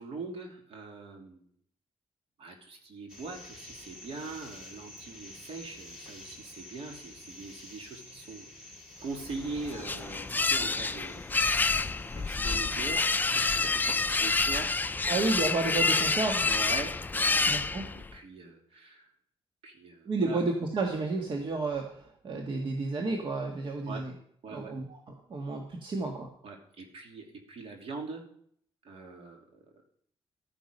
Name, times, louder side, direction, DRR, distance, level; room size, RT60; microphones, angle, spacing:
voice 1, 0.0-1.5 2.4-8.5 9.0-11.3 12.1-13.1 13.3-15.1 16.4-19.1 19.6-20.4 23.9-24.0 24.4-24.7 26.4-28.2 28.8-29.5, right 3 dB, 65° right, 1 dB, 3.1 m, -42 dB
sound 1, 3.1-15.4, left 1 dB, 5° right, 4.4 m, -51 dB
sound 2, 9.3-18.1, left 3 dB, 15° left, 0.4 m, -28 dB
voice 2, 15.1-16.5 17.4-17.8 20.0-24.1 24.5-26.3, right 3 dB, 50° right, 2 dB, 1.7 m, -31 dB
14.0 x 9.8 x 5.4 m, 0.65 s
cardioid pair, 125°, 11 cm